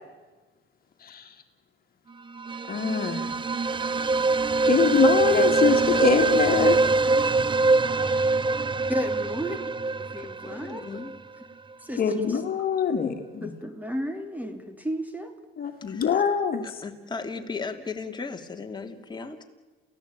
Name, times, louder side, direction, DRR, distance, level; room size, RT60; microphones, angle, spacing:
voice 1, 1.0-1.3 2.7-3.3 4.6-6.8 8.0-8.3 12.0-13.5 15.6-16.6, left 6 dB, 45° left, 5 dB, 2.6 m, -24 dB
sound 1, 2.3-11.2, right 3 dB, 25° right, 0.9 m, -23 dB
voice 2, 8.9-9.6 10.0-10.9 11.8-12.4 13.4-15.3 16.1-16.2, equal, 10° right, 7 dB, 3.0 m, -33 dB
voice 3, 10.4-11.1 15.9-16.1 16.8-19.4, left 4 dB, 20° left, 3 dB, 3.1 m, -36 dB
28.5 x 16.5 x 9.0 m, 1.3 s
cardioid pair, 90°, 20 cm